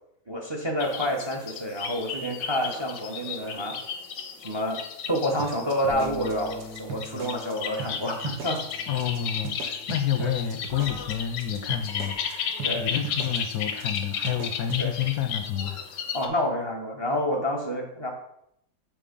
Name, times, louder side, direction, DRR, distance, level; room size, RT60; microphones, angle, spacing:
voice 1, 0.3-3.8 4.4-4.8 5.1-8.6 10.2-10.3 12.6-12.8 14.8-14.9 16.1-18.1, equal, 20° right, 2 dB, 0.9 m, -28 dB
sound 1, 0.8-16.3, left 7 dB, 90° left, 1.4 m, -34 dB
sound 2, 5.4-7.5 7.8-7.9 8.2-8.7 9.0-9.2 9.4-12.3 12.6-12.7 13.0-13.5 13.8-14.0 14.2-14.8, right 5 dB, 70° right, 1.7 m, -37 dB
Bass guitar, 5.9-12.1, left 2 dB, 45° right, 2.9 m, -46 dB
voice 2, 8.9-16.0, left 10 dB, 70° left, 7 dB, 1.0 m, -29 dB
7.5 x 3.9 x 5.2 m, 0.75 s
omnidirectional pair, 1.8 m